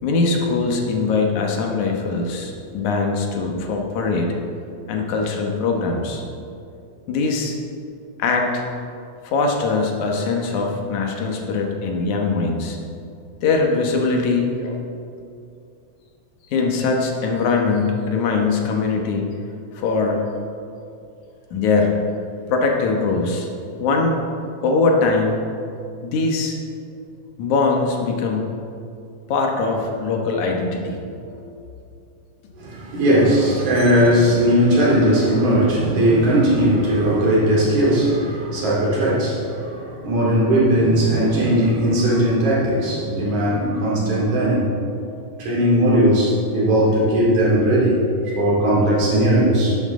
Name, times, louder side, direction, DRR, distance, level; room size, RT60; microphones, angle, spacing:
voice 1, 0.0-4.3 4.9-6.2 7.1-7.6 8.2-8.7 9.2-12.8 13.4-14.8 16.5-19.3 19.7-20.3 21.5-22.0 22.5-23.5 23.8-24.2 24.6-25.4 26.0-26.6 27.4-28.5 29.3-31.0 31.2-31.5 33.5-33.7, left 4 dB, 75° left, 1 dB, 2.5 m, -21 dB
voice 2, 32.6-44.7 45.4-48.0 48.3-49.8, right 1 dB, 75° right, -5 dB, 4.0 m, -18 dB
11.5 x 11.0 x 3.7 m, 2.5 s
omnidirectional pair, 3.5 m